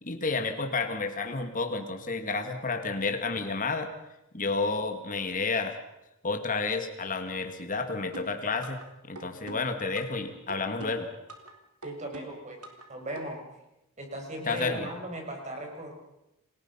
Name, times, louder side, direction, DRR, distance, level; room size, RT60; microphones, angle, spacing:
voice 1, 0.0-3.9 4.3-5.8 6.2-8.8 9.1-11.1 14.5-14.9, left 4 dB, 40° left, 6 dB, 2.1 m, -30 dB
sound 1, 8.1-8.9 9.2-10.2 10.5-11.5 11.8-12.9 13.2-13.3, right 2 dB, 85° right, 3.8 m, -43 dB
voice 2, 11.8-12.6 12.9-13.4 14.0-15.9, right 1 dB, 35° right, 2 dB, 5.9 m, -38 dB
28.5 x 20.0 x 5.7 m, 0.89 s
head